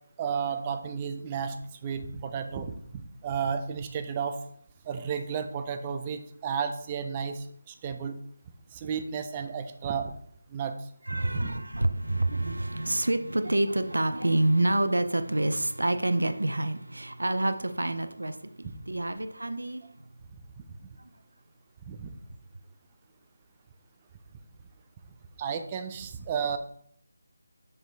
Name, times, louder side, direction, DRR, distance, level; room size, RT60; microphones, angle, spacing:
voice 1, 0.2-4.4 4.9-8.2 8.7-10.1 10.5-10.7 11.1-11.5 18.6-18.7 21.9-22.1 25.4-26.6, right 6 dB, 20° right, 8 dB, 0.5 m, -33 dB
voice 2, 11.1-19.8, right 1 dB, 85° right, 9 dB, 0.6 m, -27 dB
6.0 x 5.0 x 3.3 m, 0.66 s
figure-of-eight pair, 160°, 0 cm